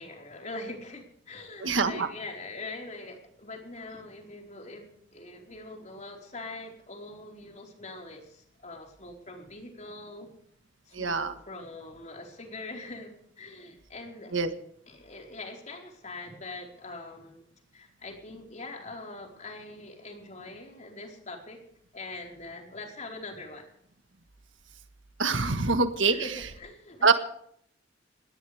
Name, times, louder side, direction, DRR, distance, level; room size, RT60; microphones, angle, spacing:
voice 1, 0.0-10.3 10.8-14.3 14.9-17.4 17.7-21.6 21.9-23.7 26.1-27.1, left 2 dB, 40° left, 1 dB, 4.6 m, -43 dB
voice 2, 1.6-2.1 10.9-11.3 14.3-14.5 25.2-26.1 27.0-27.1, right 4 dB, 85° right, 8 dB, 1.5 m, -24 dB
20.5 x 18.0 x 3.5 m, 0.66 s
head